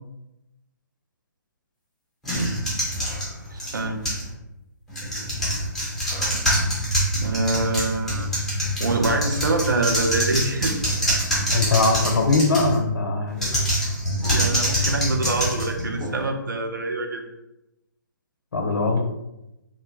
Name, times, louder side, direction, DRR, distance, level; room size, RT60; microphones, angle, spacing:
sound 1, 2.2-4.3 4.9-12.8 13.3-16.3, equal, 5° left, 0.6 m, -25 dB
voice 1, 3.5-4.1 7.1-8.3 8.8-10.8 14.3-17.2, right 2 dB, 70° right, 4 dB, 0.4 m, -25 dB
voice 2, 11.5-13.6 18.5-19.0, left 3 dB, 70° left, 2 dB, 0.4 m, -21 dB
2.1 x 2.0 x 3.0 m, 0.91 s
figure-of-eight pair, 135°, 11 cm